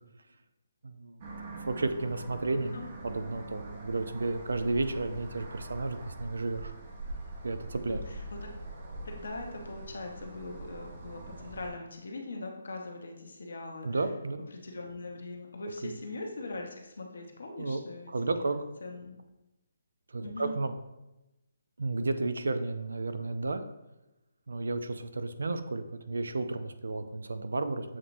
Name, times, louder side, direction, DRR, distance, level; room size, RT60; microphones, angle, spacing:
voice 1, 0.8-1.3 1.7-2.8 3.0-6.7 7.4-8.0 13.8-14.4 15.8-15.9 17.6-17.8 18.1-18.6 20.1-20.7 21.8-23.6 24.5-28.0, right 3 dB, 75° right, 10 dB, 0.4 m, -32 dB
sound 1, 1.2-11.7, right 2 dB, 40° right, 0.8 m, -43 dB
voice 2, 9.0-14.0 14.5-18.1 18.8-19.1 20.2-20.5, left 2 dB, 75° left, 1 dB, 0.9 m, -41 dB
7.2 x 2.8 x 2.6 m, 0.97 s
figure-of-eight pair, 150°, 0 cm